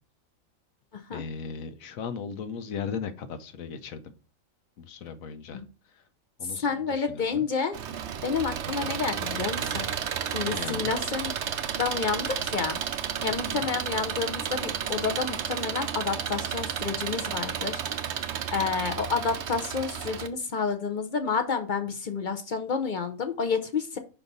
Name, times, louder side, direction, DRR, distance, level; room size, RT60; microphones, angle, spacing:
voice 1, 1.1-4.0 4.8-5.6 6.4-7.5 10.4-10.9 13.5-13.7, left 6 dB, 90° left, 11 dB, 1.2 m, -37 dB
voice 2, 6.5-7.8 8.2-11.3 11.7-12.8 13.2-18.1 18.5-24.0, left 5 dB, 50° left, 7 dB, 0.7 m, -30 dB
Engine, 7.7-20.3, right 8 dB, 65° right, 0.9 m, -32 dB
5.6 x 4.5 x 3.9 m, 0.35 s
omnidirectional pair, 1.4 m